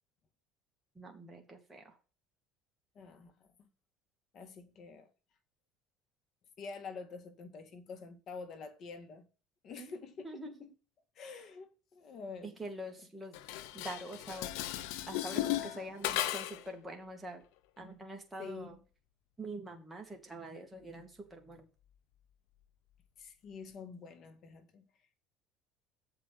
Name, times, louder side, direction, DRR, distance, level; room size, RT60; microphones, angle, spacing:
voice 1, 0.9-2.0 9.8-9.9 10.2-10.7 12.4-13.4 13.7-14.5 15.1-17.4 17.8-18.8 19.4-21.7, right 1 dB, 10° right, 2.3 m, -45 dB
voice 2, 3.0-3.7 4.3-5.1 6.6-9.3 9.6-10.5 11.2-12.5 18.4-18.8 23.2-24.9, left 4 dB, 45° left, 1.7 m, -47 dB
Dishes pots and pans, 13.3-16.7, left 13 dB, 80° left, 0.8 m, -36 dB
7.6 x 4.9 x 5.9 m
cardioid pair, 125°, 0 cm